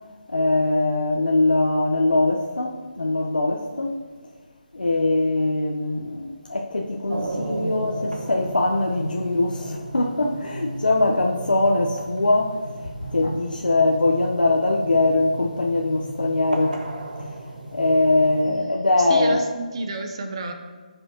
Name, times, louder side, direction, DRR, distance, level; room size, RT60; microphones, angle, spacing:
voice 1, 0.3-4.0 4.7-12.6 13.0-16.8 17.2-19.5, left 2 dB, 85° left, -1 dB, 0.8 m, -22 dB
sound 1, 7.1-18.4, right 1 dB, 75° right, 1.4 m, -35 dB
voice 2, 19.0-20.5, right 3 dB, 40° right, 5 dB, 0.8 m, -30 dB
14.5 x 5.4 x 2.8 m, 1.5 s
figure-of-eight pair, 155°, 5 cm